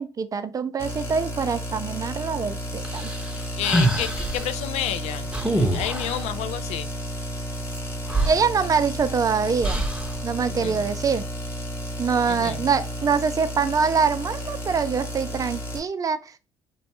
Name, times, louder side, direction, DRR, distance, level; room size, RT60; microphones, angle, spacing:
voice 1, 0.0-3.1 8.3-9.8 10.2-11.3 12.0-16.4, right 5 dB, 30° right, 0.4 m, -24 dB
sound 1, 0.8-15.8, equal, 20° left, 0.8 m, -32 dB
sound 2, 2.8-4.5 5.3-6.2 7.7-7.8 8.1-9.1 9.6-10.1, right 1 dB, 10° right, 0.8 m, -25 dB
voice 2, 3.6-5.3 5.7-6.9 10.5-10.9 12.3-12.7, left 11 dB, 70° left, 0.4 m, -30 dB
3.0 x 2.1 x 2.9 m
supercardioid pair, 65°, 11 cm